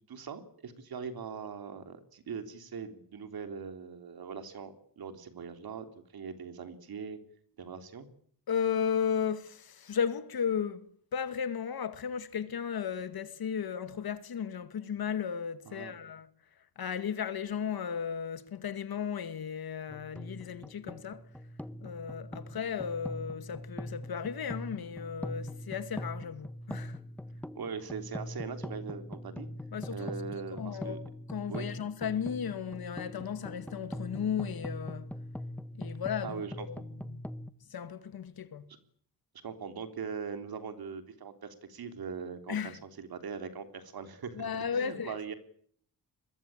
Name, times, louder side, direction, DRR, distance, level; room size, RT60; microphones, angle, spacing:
voice 1, 0.0-5.9 6.1-7.2 7.6-8.1 15.7-15.9 27.6-29.5 29.9-31.0 31.5-31.7 36.2-36.7 39.4-45.3, right 6 dB, 80° right, 3.5 m, -41 dB
voice 2, 8.5-10.9 11.1-16.3 16.8-21.3 21.8-27.0 29.7-30.1 30.5-35.1 35.8-37.2 37.7-38.7 42.5-42.8 44.4-45.3, left 7 dB, 80° left, 2.2 m, -35 dB
sound 1, 19.9-37.5, left 1 dB, 5° left, 1.2 m, -42 dB
24.5 x 21.5 x 8.9 m
wide cardioid pair, 100°, 36 cm